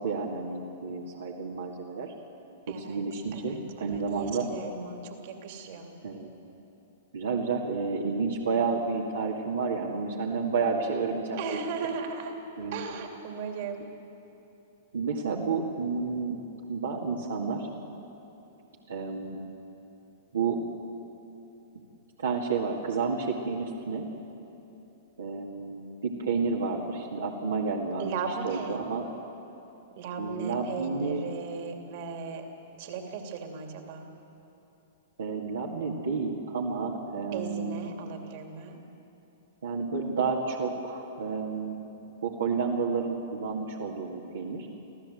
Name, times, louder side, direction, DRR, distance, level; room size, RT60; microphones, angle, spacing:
voice 1, 0.0-2.1 2.7-4.5 6.0-6.3 7.1-11.6 12.6-12.9 14.9-16.4 16.7-17.7 18.9-19.4 20.3-20.6 22.2-24.1 25.2-28.1 28.4-29.1 30.2-31.2 35.2-37.9 39.6-41.9 42.2-44.7, right 4 dB, 75° right, -2 dB, 2.0 m, -30 dB
voice 2, 2.7-3.0 3.3-5.9 11.4-12.3 12.7-13.9 28.0-28.8 30.0-32.5 32.8-34.1 37.3-38.8, right 5 dB, 50° right, 3 dB, 2.8 m, -37 dB
26.5 x 15.0 x 7.8 m, 2.9 s
figure-of-eight pair, 105°, 0 cm